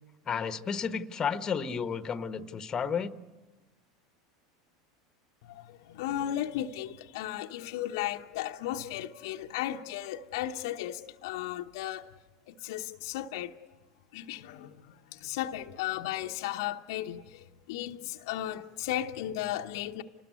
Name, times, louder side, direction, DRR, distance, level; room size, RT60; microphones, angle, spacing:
voice 1, 0.2-3.1, left 6 dB, 25° left, 1.2 m, -32 dB
voice 2, 5.4-12.1 12.5-13.5 14.1-20.0, left 12 dB, 60° left, 1.0 m, -35 dB
28.5 x 19.5 x 9.5 m
figure-of-eight pair, 80°, 2 cm